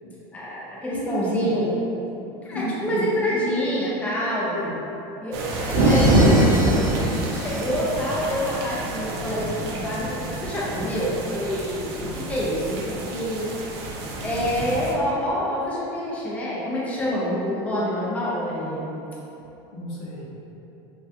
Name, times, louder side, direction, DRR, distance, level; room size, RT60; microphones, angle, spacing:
voice 1, 0.3-1.8 2.4-4.6 5.2-6.5 7.1-13.5 14.2-18.9, equal, 10° left, -7 dB, 0.5 m, -27 dB
voice 2, 0.9-1.6 2.5-3.0 4.5-4.7 19.7-20.4, equal, 65° left, -4 dB, 0.6 m, -32 dB
sound 1, 5.3-14.9, right 1 dB, 80° right, 0.4 m, -25 dB
sound 2, 5.4-8.3, equal, 15° right, 0.8 m, -33 dB
3.3 x 2.2 x 2.7 m, 2.9 s
supercardioid pair, 145°, 13 cm